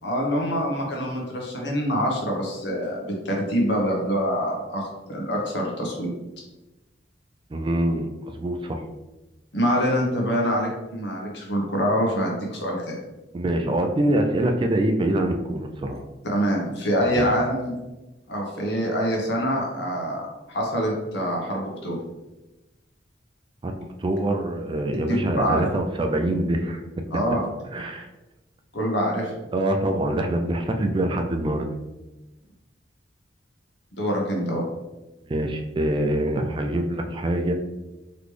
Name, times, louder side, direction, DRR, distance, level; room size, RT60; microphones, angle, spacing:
voice 1, 0.0-6.1 9.5-13.0 16.2-17.7 18.3-22.0 25.1-25.6 27.1-27.4 28.7-29.4 33.9-34.6, equal, 65° left, -1 dB, 1.1 m, -25 dB
voice 2, 7.5-8.9 13.3-16.0 17.0-17.3 23.6-26.8 27.7-28.1 29.5-31.7 35.3-37.5, right 1 dB, 25° right, 4 dB, 0.3 m, -25 dB
4.0 x 3.1 x 3.2 m, 1.1 s
head